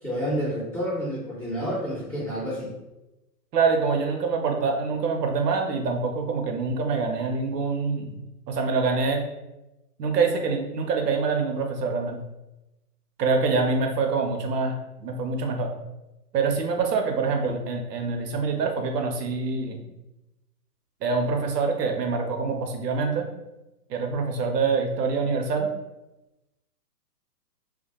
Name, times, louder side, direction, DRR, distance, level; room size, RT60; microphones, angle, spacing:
voice 1, 0.0-2.7, equal, 25° left, -11 dB, 0.7 m, -29 dB
voice 2, 3.5-8.2 8.5-9.3 10.0-12.2 13.2-15.7 16.3-19.8 21.0-23.3 23.9-25.7, right 4 dB, 80° right, 3 dB, 0.7 m, -25 dB
2.2 x 2.1 x 2.8 m, 0.97 s
hypercardioid pair, 180°, 48 cm